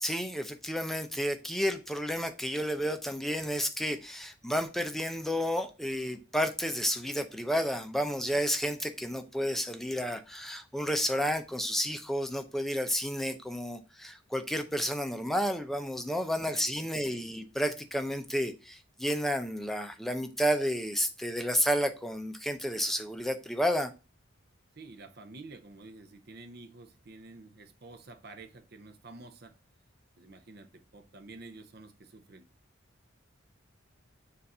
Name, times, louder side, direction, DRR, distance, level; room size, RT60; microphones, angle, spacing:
voice 1, 0.0-23.9, equal, ahead, 0.5 m, -31 dB
voice 2, 16.5-17.3 24.8-29.6 30.2-32.5, right 3 dB, 50° right, 0.6 m, -50 dB
6.9 x 2.5 x 5.4 m
head